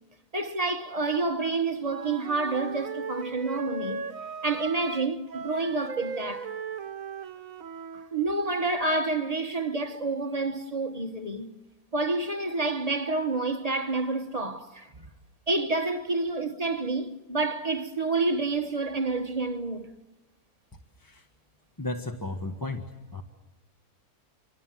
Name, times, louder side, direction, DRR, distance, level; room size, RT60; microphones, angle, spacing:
voice 1, 0.3-4.0 4.4-6.5 7.9-11.5 11.9-15.1 15.5-19.9, right 3 dB, 25° right, 1.2 m, -29 dB
Wind instrument woodwind instrument, 1.8-8.1, right 5 dB, 65° right, 1.5 m, -37 dB
voice 2, 21.8-22.8 23.1-23.2, left 2 dB, 15° left, 1.3 m, -34 dB
26.5 x 24.5 x 7.7 m
omnidirectional pair, 1.6 m